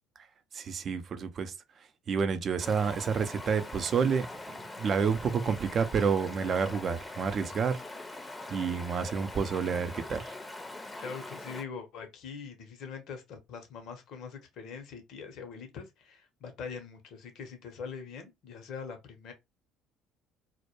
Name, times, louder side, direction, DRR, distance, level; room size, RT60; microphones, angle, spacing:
voice 1, 0.5-1.5 2.1-7.8 8.5-10.4, right 6 dB, 45° right, 0.4 m, -29 dB
Stream, 2.6-11.6, left 2 dB, 15° left, 0.6 m, -43 dB
voice 2, 11.0-19.3, left 6 dB, 60° left, 0.7 m, -43 dB
2.1 x 2.1 x 2.9 m
hypercardioid pair, 60°, 0 cm